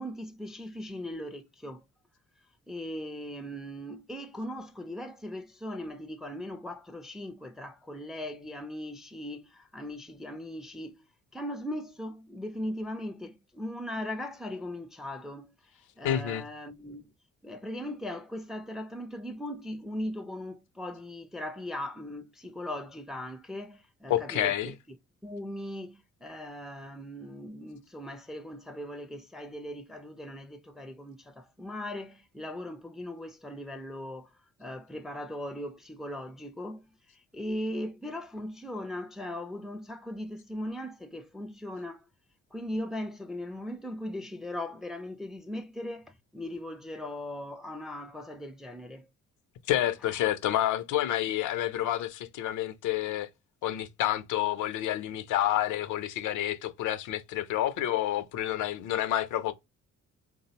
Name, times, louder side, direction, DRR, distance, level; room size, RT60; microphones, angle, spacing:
voice 1, 0.0-1.8 2.7-11.1 11.3-15.5 16.0-17.0 17.4-24.7 25.2-34.3 34.6-36.9 37.1-42.1 42.5-49.1, left 1 dB, ahead, 0.3 m, -39 dB
voice 2, 16.0-16.4 24.1-24.7 49.7-53.3 53.6-59.5, left 12 dB, 80° left, 0.5 m, -29 dB
3.4 x 2.0 x 2.7 m
cardioid pair, 90°, 30 cm